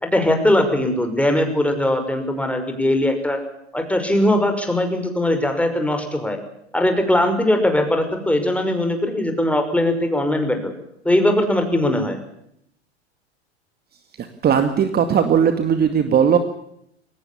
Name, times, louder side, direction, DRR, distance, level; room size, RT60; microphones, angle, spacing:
voice 1, 0.0-3.4 3.7-6.4 6.7-10.7 11.0-12.2, left 1 dB, 5° left, 6 dB, 5.7 m, -20 dB
voice 2, 14.4-16.4, right 8 dB, 30° right, 8 dB, 2.1 m, -17 dB
23.0 x 19.5 x 7.2 m, 0.74 s
hypercardioid pair, 90°, 34 cm